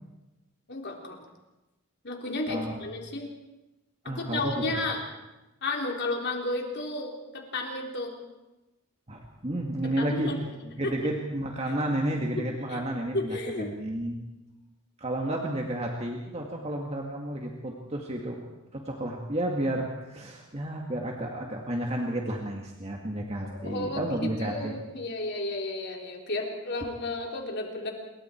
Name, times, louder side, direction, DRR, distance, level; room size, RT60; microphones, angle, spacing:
voice 1, 0.7-1.2 2.0-3.3 4.0-5.0 5.6-8.1 10.0-11.1 12.4-12.8 13.1-13.7 23.4-27.9, left 2 dB, 50° left, 1 dB, 3.8 m, -33 dB
voice 2, 2.5-2.8 4.0-4.8 9.1-10.3 10.7-14.2 15.0-18.4 18.7-24.8, right 1 dB, 30° right, 0 dB, 2.0 m, -31 dB
27.0 x 23.0 x 4.6 m, 1.0 s
head